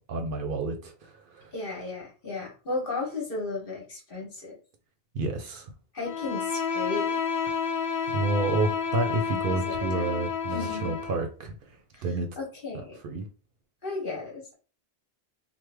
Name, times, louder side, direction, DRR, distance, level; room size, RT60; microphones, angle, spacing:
voice 1, 0.1-1.5 5.1-5.7 8.1-12.3 13.0-13.3, right 3 dB, 65° right, 5 dB, 0.7 m, -30 dB
voice 2, 1.5-4.5 5.9-7.2 9.5-9.6 9.9-10.1 10.5-10.9 11.9-12.0 12.4-13.0 13.8-14.5, left 3 dB, 60° left, -1 dB, 1.2 m, -34 dB
Bowed string instrument, 6.0-11.2, left 6 dB, 75° left, 0.9 m, -30 dB
3.1 x 2.1 x 3.3 m, 0.35 s
omnidirectional pair, 1.1 m